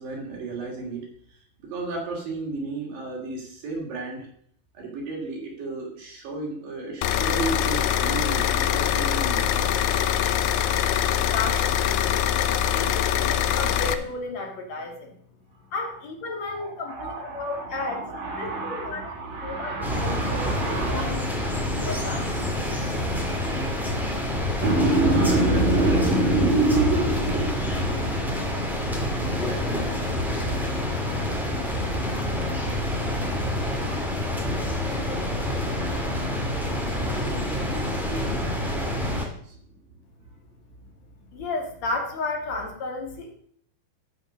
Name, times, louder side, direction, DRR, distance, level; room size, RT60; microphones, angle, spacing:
voice 1, 0.0-4.3 4.7-9.9 16.4-21.1 24.6-31.5 32.4-34.6 34.8-36.4 37.0-39.6, right 2 dB, 75° right, -2 dB, 4.5 m, -29 dB
sound 1, 7.0-13.9, left 10 dB, 80° left, 2.3 m, -23 dB
voice 2, 11.2-12.1 12.4-15.1 15.7-18.0 18.4-19.1 19.4-19.7 20.0-22.6 41.3-43.3, left 3 dB, 55° left, 2 dB, 3.2 m, -33 dB
sound 2, 19.8-39.2, left 1 dB, ahead, 1.6 m, -27 dB
12.5 x 5.9 x 6.4 m, 0.64 s
omnidirectional pair, 4.0 m